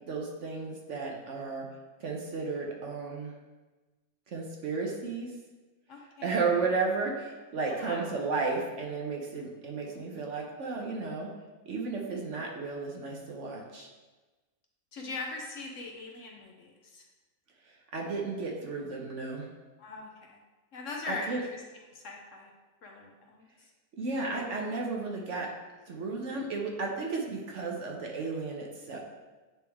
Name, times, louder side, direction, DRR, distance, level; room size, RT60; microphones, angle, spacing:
voice 1, 0.1-1.7 2.0-3.3 4.3-5.3 6.2-11.3 11.7-13.9 17.9-19.5 21.1-21.4 24.0-25.5 25.9-29.0, right 4 dB, 55° right, -1 dB, 1.0 m, -33 dB
voice 2, 5.9-6.3 7.6-8.1 12.3-12.4 14.9-17.0 19.8-20.4 20.7-21.6 21.9-22.5 22.8-23.5, left 3 dB, 60° left, 0 dB, 1.0 m, -41 dB
9.1 x 3.3 x 3.4 m, 1.2 s
omnidirectional pair, 1.7 m